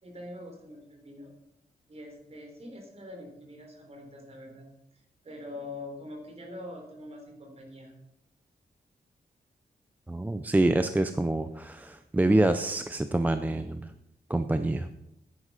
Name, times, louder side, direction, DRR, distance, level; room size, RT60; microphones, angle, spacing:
voice 1, 0.0-1.3 1.9-4.7 5.2-7.9, left 1 dB, 40° right, 2 dB, 3.6 m, -44 dB
voice 2, 10.1-13.9 14.3-14.9, right 2 dB, 10° right, 9 dB, 0.5 m, -26 dB
10.0 x 9.9 x 5.6 m, 0.84 s
wide cardioid pair, 160°, 16 cm